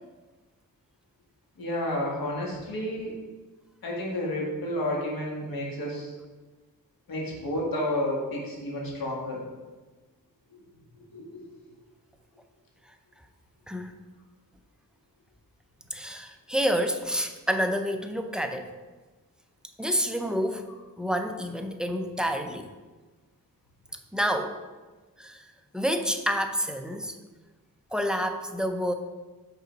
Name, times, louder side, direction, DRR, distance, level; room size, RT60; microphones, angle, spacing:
voice 1, 1.6-3.2 3.8-6.1 7.1-9.4 11.1-11.5, left 1 dB, 85° left, -3 dB, 1.7 m, -31 dB
voice 2, 15.9-18.7 19.8-22.7 24.1-24.6 25.2-25.4 25.7-27.2 27.9-28.9, equal, ahead, 6 dB, 0.4 m, -28 dB
5.4 x 3.9 x 5.2 m, 1.3 s
wide cardioid pair, 115°, 35 cm